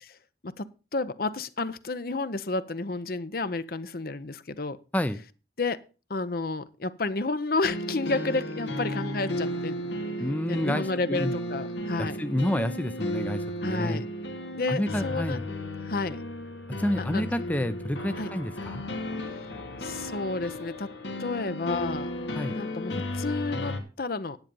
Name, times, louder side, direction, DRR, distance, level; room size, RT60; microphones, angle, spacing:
voice 1, 0.4-4.8 5.6-5.8 6.1-9.8 10.5-12.2 13.6-14.0 14.5-15.4 15.8-16.2 17.0-17.3 18.2-18.3 19.8-20.9 21.2-22.1 22.6-24.4, left 3 dB, 55° left, 0.8 m, -31 dB
sound 1, 7.6-23.8, left 1 dB, 85° left, 2.1 m, -34 dB
voice 2, 10.2-11.3 12.0-14.0 14.7-15.4 16.7-18.8 22.4-22.6, left 1 dB, 10° left, 0.5 m, -29 dB
10.5 x 8.8 x 5.3 m
head